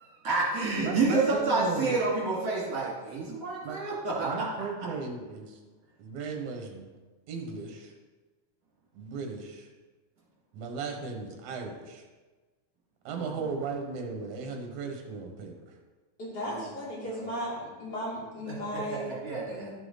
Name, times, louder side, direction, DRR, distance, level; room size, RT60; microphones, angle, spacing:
voice 1, 0.0-4.4 13.1-13.4 16.4-16.6 17.0-17.4 18.5-18.6 19.1-19.7, right 3 dB, 55° right, -6 dB, 3.4 m, -29 dB
voice 2, 0.8-2.0 3.6-3.8 4.2-5.6 6.0-6.9 7.3-7.9 8.9-9.7 10.5-12.0 13.0-15.7, right 4 dB, 70° right, 3 dB, 2.5 m, -36 dB
voice 3, 16.2-19.1 19.5-19.7, equal, 30° left, -7 dB, 3.6 m, -36 dB
12.0 x 5.9 x 4.0 m, 1.3 s
omnidirectional pair, 3.6 m